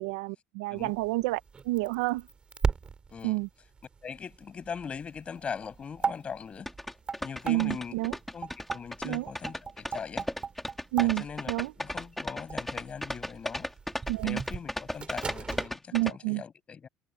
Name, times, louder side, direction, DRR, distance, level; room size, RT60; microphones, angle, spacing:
voice 1, 0.0-2.3 3.2-3.5 7.5-8.2 9.0-9.3 10.9-11.7 14.1-14.4 15.9-16.4, right 21 dB, 85° right, 0.8 m, -29 dB
sound 1, 0.8-15.7, right 5 dB, 25° right, 3.0 m, -38 dB
voice 2, 4.0-6.7 7.2-8.0 8.3-10.3 11.0-13.7 14.2-16.9, left 6 dB, 30° left, 7.1 m, -40 dB
sound 2, 6.7-16.1, left 1 dB, 5° left, 3.1 m, -35 dB
supercardioid pair, 100°, 4 cm